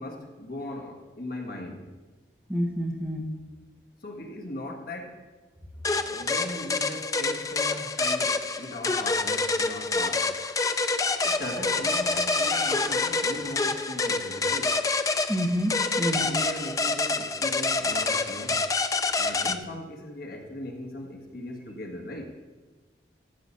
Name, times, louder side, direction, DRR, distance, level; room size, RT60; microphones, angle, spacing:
voice 1, 0.0-1.9 4.0-5.3 5.8-10.3 11.2-14.8 16.0-18.6 19.2-22.3, left 1 dB, 50° left, 1 dB, 1.7 m, -38 dB
voice 2, 2.5-3.2 15.3-16.3, equal, 10° right, 0 dB, 1.1 m, -28 dB
sound 1, 5.8-19.6, left 3 dB, 20° left, 0.3 m, -27 dB
sound 2, 11.1-15.6, left 1 dB, 45° right, 2.6 m, -45 dB
14.5 x 5.9 x 5.4 m, 1.2 s
head